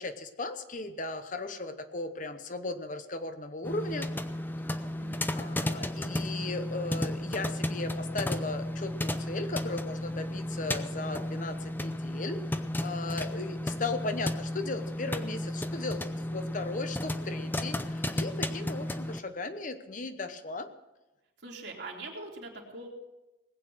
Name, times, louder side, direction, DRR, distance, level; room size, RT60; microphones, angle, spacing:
voice 1, 0.0-4.1 5.4-16.0 16.3-20.7, left 3 dB, 45° left, 9 dB, 0.9 m, -37 dB
sound 1, 3.6-19.2, left 1 dB, 10° left, 0.6 m, -33 dB
voice 2, 18.4-18.7 21.4-22.9, right 2 dB, 70° right, -1 dB, 3.2 m, -43 dB
19.5 x 8.7 x 6.2 m, 1.0 s
head